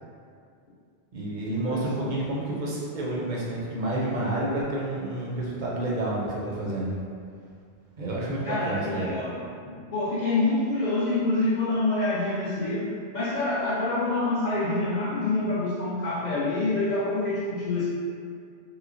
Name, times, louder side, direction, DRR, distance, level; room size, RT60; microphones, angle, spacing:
voice 1, 1.1-6.9 8.0-9.1, right 1 dB, 55° right, -5 dB, 0.6 m, -29 dB
voice 2, 1.7-2.1 8.4-9.4 9.6-17.9, left 2 dB, 55° left, -8 dB, 0.5 m, -27 dB
3.1 x 2.9 x 2.5 m, 2.3 s
omnidirectional pair, 1.1 m